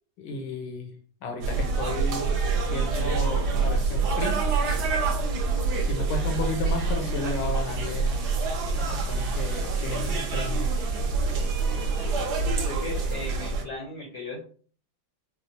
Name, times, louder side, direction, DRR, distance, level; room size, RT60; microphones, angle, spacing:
voice 1, 0.2-0.9 1.2-4.4 5.9-8.2 8.7-10.7 11.3-11.4, left 2 dB, 80° left, 4 dB, 1.6 m, -33 dB
sound 1, 1.4-13.6, right 4 dB, 65° right, 1.2 m, -26 dB
voice 2, 12.6-14.4, left 3 dB, 60° left, -2 dB, 1.0 m, -37 dB
4.2 x 2.0 x 2.7 m, 0.43 s
omnidirectional pair, 2.3 m